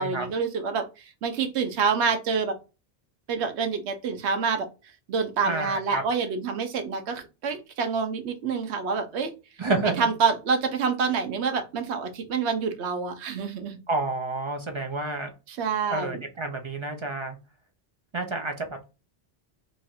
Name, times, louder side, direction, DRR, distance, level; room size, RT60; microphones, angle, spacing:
voice 1, 0.0-2.6 3.3-4.7 5.1-9.3 10.0-13.8 15.5-16.2, right 5 dB, 75° right, 7 dB, 1.0 m, -27 dB
voice 2, 5.4-6.0 9.6-10.1 13.9-15.3 15.9-17.4 18.1-18.9, right 2 dB, 40° right, 4 dB, 0.4 m, -29 dB
3.0 x 2.4 x 4.1 m, 0.30 s
omnidirectional pair, 1.1 m